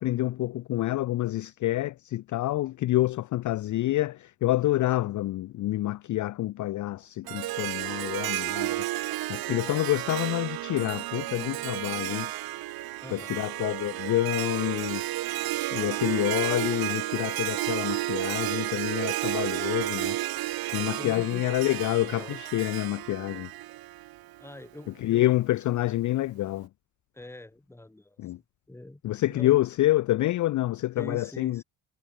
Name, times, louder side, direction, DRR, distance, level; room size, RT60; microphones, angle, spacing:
voice 1, 0.0-8.9 9.3-12.3 13.1-15.0 15.7-20.2 20.7-23.5 24.9-26.7 28.2-28.4 29.0-31.6, left 15 dB, 40° left, 0.4 m, -27 dB
Harp, 7.3-24.5, right 17 dB, 50° right, 0.6 m, -32 dB
voice 2, 13.0-13.4 21.0-21.5 22.0-22.4 24.4-25.4 27.1-28.3 28.7-29.0 29.3-29.6 31.0-31.6, left 1 dB, 5° left, 1.0 m, -43 dB
supercardioid pair, 70°, 48 cm